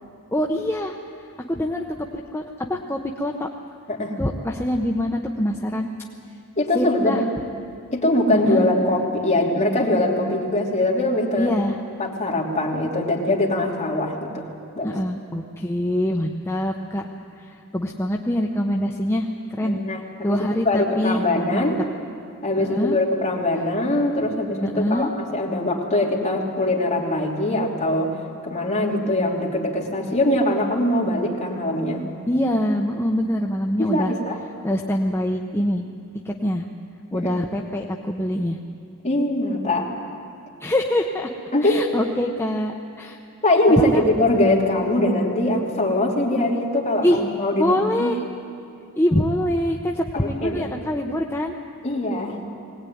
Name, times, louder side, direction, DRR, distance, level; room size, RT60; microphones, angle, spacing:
voice 1, 0.3-1.0 1.5-1.8 2.1-3.5 4.2-5.9 6.7-7.2 8.3-8.6 11.4-11.8 14.8-17.0 17.4-19.8 20.2-21.2 21.5-21.7 22.5-23.0 24.6-25.1 32.3-34.1 34.6-35.9 36.2-36.7 37.1-38.6 40.6-41.3 41.6-43.2 43.8-44.0 47.0-47.2 47.6-48.2 49.0-51.5, left 1 dB, 10° left, 1 dB, 0.8 m, -24 dB
voice 2, 6.6-7.3 7.9-11.5 12.0-14.5 14.8-15.0 19.6-20.4 20.6-21.8 22.4-28.1 28.4-32.0 33.8-34.4 37.1-37.3 39.0-39.9 41.5-41.9 43.4-48.1 50.1-50.7 51.8-52.4, left 1 dB, 35° left, -3 dB, 3.1 m, -22 dB
21.0 x 18.5 x 9.3 m, 2.4 s
head